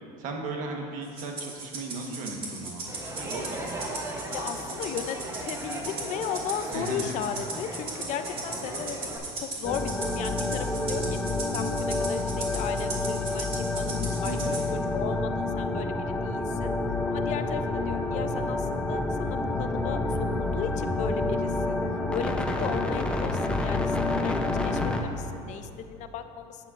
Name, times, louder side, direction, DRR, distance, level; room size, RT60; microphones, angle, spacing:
voice 1, 0.2-2.8 3.1-3.8 6.7-7.2 14.2-14.6, right 3 dB, 65° right, 2 dB, 1.2 m, -36 dB
Rattle (instrument), 1.2-14.7, right 3 dB, 40° right, 1.9 m, -37 dB
Crowd, 2.9-9.2, right 1 dB, 20° right, 1.0 m, -38 dB
voice 2, 4.3-11.2 11.5-16.7 17.1-20.0 20.3-21.8 22.1-26.7, left 8 dB, 55° left, 9 dB, 0.5 m, -36 dB
sound 1, 9.6-25.0, left 2 dB, 5° left, 0.6 m, -28 dB
10.5 x 7.3 x 2.5 m, 2.6 s
supercardioid pair, 105°, 15 cm